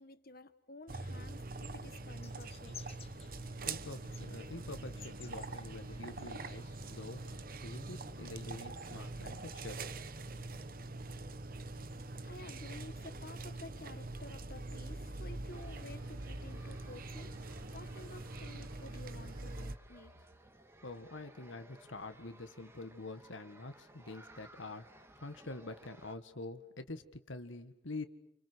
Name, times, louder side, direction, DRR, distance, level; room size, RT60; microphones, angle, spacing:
voice 1, 0.0-2.8 12.2-17.4 17.7-20.3, left 2 dB, 50° left, 12 dB, 1.5 m, -52 dB
sound 1, 0.9-19.7, right 2 dB, 45° right, 1.1 m, -44 dB
sound 2, 2.2-7.4, left 7 dB, 30° left, 1.6 m, -56 dB
voice 2, 3.6-9.9 20.8-28.1, left 2 dB, 80° left, 9 dB, 1.8 m, -46 dB
sound 3, 15.5-26.1, right 1 dB, 15° right, 1.7 m, -60 dB
30.0 x 28.5 x 6.3 m, 0.75 s
head